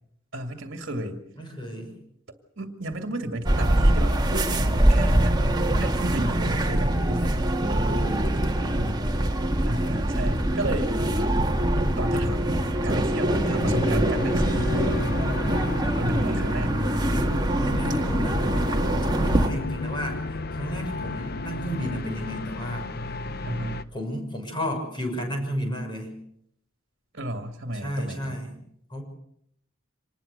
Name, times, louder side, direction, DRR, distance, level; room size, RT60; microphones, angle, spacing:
voice 1, 0.3-1.2 2.6-7.3 8.6-9.0 9.6-10.9 12.0-15.0 16.0-16.9 23.4-23.8 27.1-28.4, right 1 dB, 55° right, 6 dB, 2.2 m, -33 dB
voice 2, 1.4-1.9 7.7-8.4 17.6-22.9 23.9-26.2 27.8-28.6 28.9-29.0, equal, 25° left, 2 dB, 6.4 m, -33 dB
sound 1, 3.4-19.5, right 1 dB, 20° right, 1.8 m, -23 dB
sound 2, 13.3-23.8, left 3 dB, 50° left, 0.9 m, -33 dB
25.5 x 20.5 x 6.7 m, 0.72 s
head